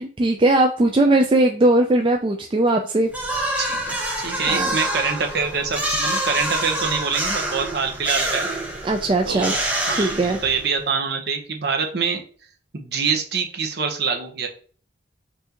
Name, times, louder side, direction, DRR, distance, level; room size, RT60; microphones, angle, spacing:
voice 1, 0.0-3.1 4.5-4.8 8.8-9.5 10.0-10.4, right 2 dB, 25° right, 3 dB, 0.3 m, -19 dB
sound 1, 3.1-10.8, right 1 dB, 5° right, 0.7 m, -26 dB
voice 2, 3.6-8.5 9.3-9.6 9.9-12.2 12.7-14.5, right 5 dB, 55° right, 4 dB, 0.8 m, -25 dB
5.5 x 2.6 x 2.9 m, 0.43 s
head